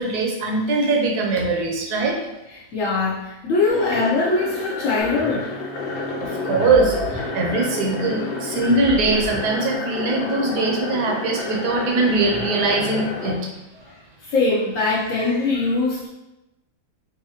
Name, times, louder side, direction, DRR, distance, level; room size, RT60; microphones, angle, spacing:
voice 1, 0.0-2.2 6.2-13.6, right 3 dB, 75° right, 0 dB, 1.2 m, -21 dB
voice 2, 2.7-5.5 13.9-16.1, left 3 dB, 60° left, -6 dB, 0.9 m, -22 dB
sound 1, 3.7-13.4, left 4 dB, 85° left, 1.2 m, -30 dB
sound 2, 5.0-9.9, right 3 dB, 45° right, 0.8 m, -35 dB
3.9 x 2.5 x 2.8 m, 0.96 s
omnidirectional pair, 1.8 m